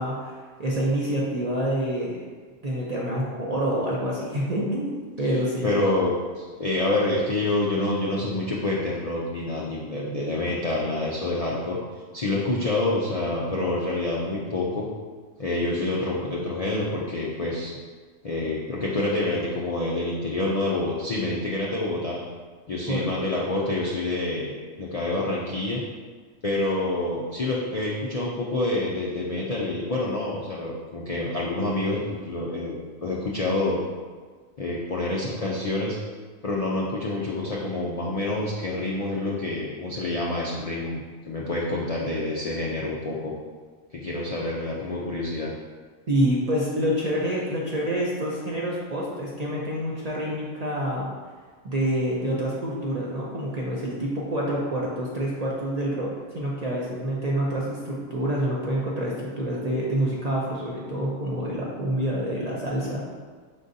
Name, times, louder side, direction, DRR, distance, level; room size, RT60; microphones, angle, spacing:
voice 1, 0.0-2.2 2.6-5.7 22.9-23.1 46.1-51.1 51.6-63.1, right 1 dB, 45° right, -5 dB, 0.5 m, -27 dB
voice 2, 5.6-11.8 12.1-14.9 15.4-17.7 18.2-22.2 22.7-24.5 24.8-25.8 26.4-33.8 34.6-36.0 36.4-43.3 43.9-45.5, left 2 dB, 80° left, -4 dB, 0.3 m, -27 dB
5.2 x 3.8 x 2.6 m, 1.5 s
omnidirectional pair, 1.4 m